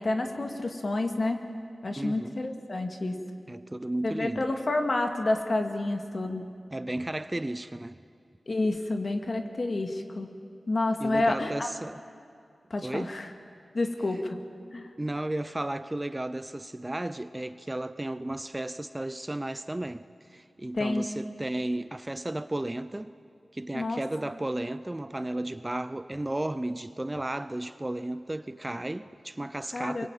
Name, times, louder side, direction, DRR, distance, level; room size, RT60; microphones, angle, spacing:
voice 1, 0.0-1.4 1.8-3.2 4.0-6.5 8.5-10.3 10.7-11.7 12.7-13.3 13.7-14.4 14.7-14.9 20.7-21.1 23.7-24.0 29.7-30.1, left 2 dB, 45° left, 2.1 m, -29 dB
voice 2, 2.0-2.4 3.5-4.5 6.7-8.0 11.0-12.0 12.8-13.1 14.1-14.2 15.0-23.1 23.5-30.1, right 1 dB, 20° right, 0.5 m, -34 dB
24.5 x 23.0 x 9.0 m
wide cardioid pair, 115°, 0 cm